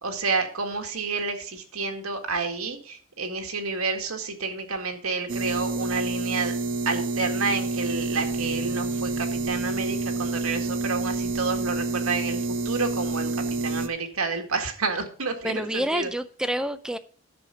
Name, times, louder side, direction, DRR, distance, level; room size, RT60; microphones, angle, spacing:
voice 1, 0.0-6.6 6.9-16.1, right 4 dB, 90° right, 4 dB, 1.9 m, -30 dB
sound 1, 5.3-13.9, right 3 dB, 60° right, 0.9 m, -28 dB
voice 2, 15.4-17.0, equal, 5° right, 11 dB, 0.4 m, -28 dB
10.5 x 6.8 x 5.1 m, 0.43 s
head